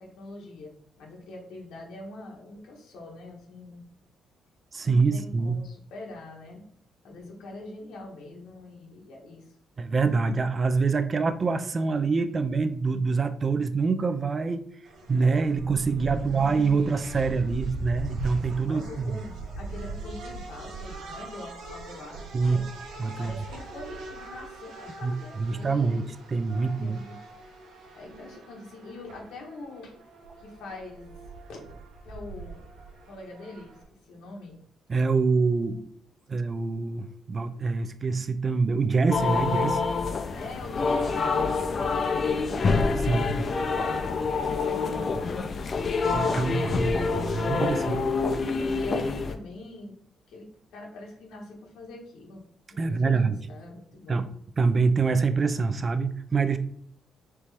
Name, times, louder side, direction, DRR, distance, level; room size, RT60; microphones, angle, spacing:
voice 1, 0.0-3.8 4.8-6.6 7.0-9.5 16.1-16.8 18.7-22.6 23.2-26.2 26.6-27.2 27.9-30.0 30.4-31.2 31.5-31.6 32.0-32.7 33.0-34.6 40.3-42.6 43.0-45.8 46.9-47.0 47.8-48.0 48.5-49.9 50.3-50.5 50.7-52.4 52.7-54.3, left 2 dB, 85° left, -1 dB, 1.3 m, -43 dB
voice 2, 4.7-5.6 9.8-14.6 15.1-19.1 22.3-22.6 23.0-23.3 25.0-27.0 34.9-35.8 36.3-39.8 43.0-43.2 46.1-48.0 52.8-53.4 54.1-54.3 54.6-56.6, right 4 dB, 35° right, 11 dB, 0.3 m, -25 dB
sound 1, 14.9-33.8, right 3 dB, 90° right, 1.0 m, -41 dB
sound 2, 39.1-49.4, left 4 dB, 45° left, 0.5 m, -26 dB
4.3 x 3.1 x 3.4 m, 0.66 s
cardioid pair, 90°, 0 cm